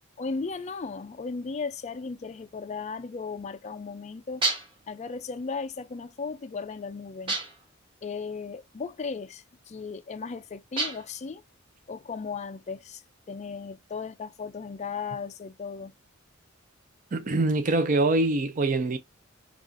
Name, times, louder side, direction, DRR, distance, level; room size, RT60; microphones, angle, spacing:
voice 1, 0.2-4.4 4.9-7.4 8.0-11.4 11.9-13.0 13.3-15.9, left 4 dB, 35° left, 0.4 m, -36 dB
sound 1, 4.4-4.9 7.3-7.7 10.8-11.2, right 3 dB, 25° right, 1.3 m, -29 dB
voice 2, 17.1-19.0, right 2 dB, 40° right, 0.5 m, -24 dB
2.9 x 2.4 x 3.8 m
head